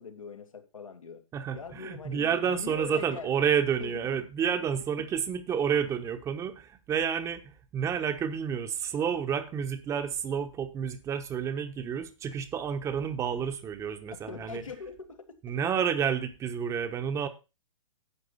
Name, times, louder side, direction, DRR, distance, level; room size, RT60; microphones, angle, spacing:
voice 1, 0.0-1.2 1.5-3.3 3.8-4.1 13.3-13.4 14.3-15.6, left 6 dB, 85° left, 2.4 m, -42 dB
voice 2, 1.3-14.6 15.4-17.3, right 7 dB, 15° right, 1.0 m, -30 dB
11.0 x 7.7 x 4.0 m
hypercardioid pair, 125°, 17 cm